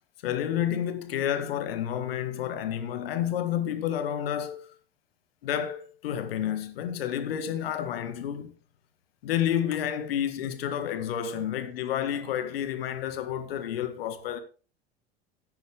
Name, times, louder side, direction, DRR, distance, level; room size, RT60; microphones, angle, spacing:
voice 1, 0.2-4.7 5.4-8.5 9.2-14.4, left 10 dB, 65° left, 1.6 m, -30 dB
13.5 x 10.0 x 3.3 m
figure-of-eight pair, 75°, 32 cm